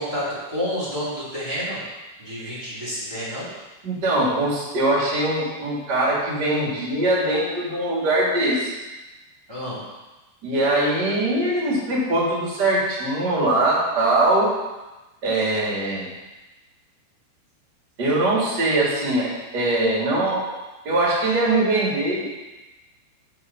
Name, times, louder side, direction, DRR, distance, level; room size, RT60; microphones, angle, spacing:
voice 1, 0.0-1.8 2.2-3.5 9.5-9.9, equal, 20° right, -10 dB, 0.7 m, -29 dB
voice 2, 3.8-8.7 10.4-14.5 15.2-16.1 18.0-20.5 20.8-22.2, right 2 dB, 40° right, -5 dB, 1.6 m, -22 dB
7.6 x 4.6 x 6.9 m, 1.1 s
omnidirectional pair, 5.4 m